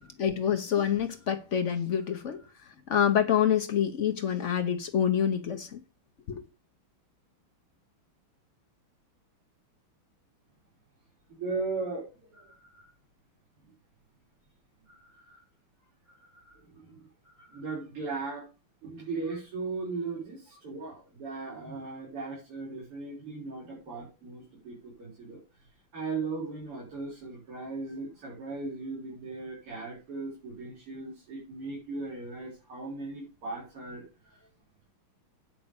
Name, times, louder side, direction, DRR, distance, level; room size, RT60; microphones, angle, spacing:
voice 1, 0.2-2.4 2.9-5.8 6.3-6.4, left 9 dB, 70° left, 0.7 m, -27 dB
voice 2, 11.4-12.0 12.3-12.9 14.9-15.4 16.3-16.9 17.5-18.4 18.8-25.4 25.9-34.0, right 3 dB, 90° right, 5.0 m, -37 dB
9.2 x 5.2 x 6.9 m
omnidirectional pair, 2.4 m